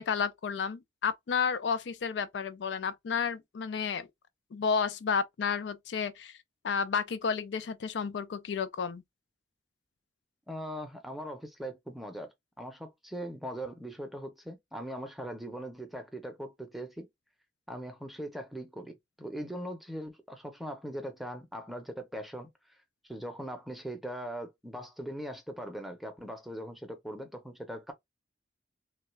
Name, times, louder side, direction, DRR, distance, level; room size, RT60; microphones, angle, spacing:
voice 1, 0.0-4.1 4.5-6.4 6.6-9.0, left 6 dB, 80° left, 0.4 m, -31 dB
voice 2, 10.5-17.1 17.7-22.5 23.1-27.9, equal, ahead, 0.6 m, -40 dB
3.2 x 2.3 x 3.1 m
head